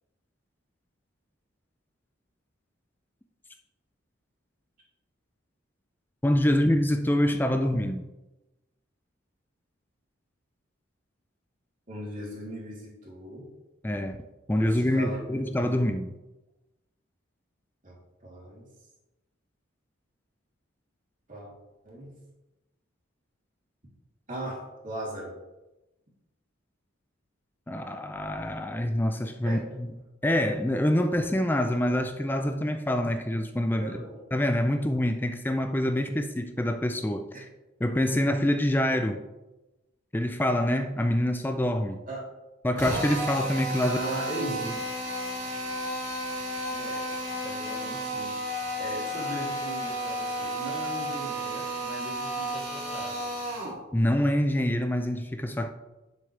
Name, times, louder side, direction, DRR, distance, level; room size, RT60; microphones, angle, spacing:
voice 1, 6.2-8.1 13.8-14.2 14.5-16.1 27.7-29.9 30.2-37.5 37.8-39.2 40.1-42.0 42.6-44.0 44.6-44.7 53.9-55.7, left 1 dB, 10° left, 7 dB, 0.4 m, -26 dB
voice 2, 11.9-13.5 14.6-15.9 17.8-18.0 18.2-18.7 21.3-21.5 21.8-22.1 24.3-25.3 29.4-29.6 33.8-34.2 42.1-42.2 43.8-44.7 46.7-47.1 47.4-48.3 48.8-53.3, right 1 dB, 40° right, -5 dB, 3.2 m, -38 dB
Drill, 42.8-53.8, equal, 60° right, 2.7 m, -32 dB
9.9 x 7.3 x 3.3 m, 1.0 s
head